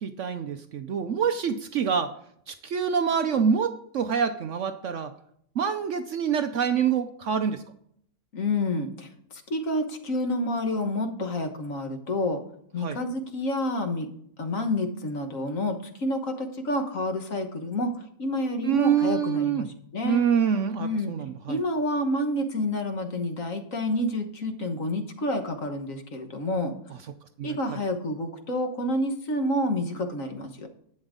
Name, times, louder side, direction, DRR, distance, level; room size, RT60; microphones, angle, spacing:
voice 1, 0.0-2.1 2.5-5.1 5.6-7.6 12.8-13.0 18.6-19.7 20.0-21.6 27.4-27.8, right 7 dB, 70° right, 9 dB, 0.7 m, -26 dB
voice 2, 8.3-12.4 12.7-14.1 14.4-17.9 18.2-19.7 19.9-20.2 20.8-21.1 21.5-26.7 27.4-30.7, left 1 dB, 50° left, 6 dB, 1.6 m, -29 dB
11.5 x 8.9 x 3.7 m, 0.68 s
omnidirectional pair, 2.0 m